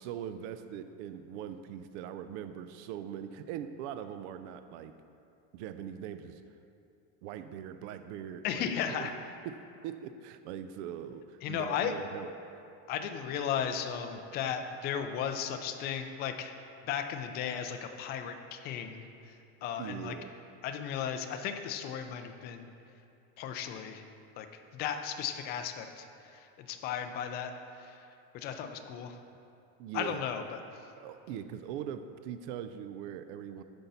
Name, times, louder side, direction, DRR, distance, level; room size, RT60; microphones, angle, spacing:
voice 1, 0.0-4.9 5.5-6.4 7.2-9.1 9.4-12.3 19.8-20.3 28.6-28.7 29.8-30.2 31.0-33.6, right 9 dB, 65° right, 10 dB, 0.5 m, -41 dB
voice 2, 8.4-9.1 11.4-11.9 12.9-16.6 16.9-19.0 19.6-20.1 20.6-22.7 23.4-24.0 24.4-24.5 24.7-26.1 26.3-27.5 27.8-27.9 28.3-29.2 29.9-30.6, left 8 dB, 30° left, 6 dB, 0.4 m, -35 dB
10.0 x 5.5 x 4.0 m, 2.6 s
supercardioid pair, 155°, 38 cm